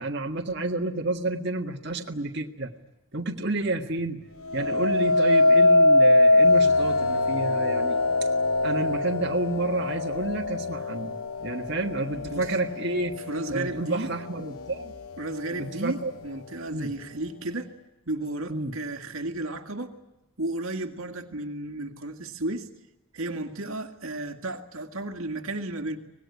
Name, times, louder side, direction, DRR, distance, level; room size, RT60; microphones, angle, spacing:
voice 1, 0.0-2.7 3.1-4.2 4.5-8.0 8.6-13.2 13.5-14.9 15.6-16.1 16.7-16.9 18.5-18.7, right 2 dB, 50° right, 1 dB, 1.9 m, -30 dB
sound 1, 4.5-13.6 14.1-14.6, left 2 dB, 85° left, 0.9 m, -22 dB
voice 2, 13.3-14.1 15.2-17.7 18.1-20.0 20.4-22.7 23.1-26.0, right 2 dB, 80° right, 4 dB, 2.1 m, -33 dB
25.0 x 19.5 x 9.7 m, 0.97 s
head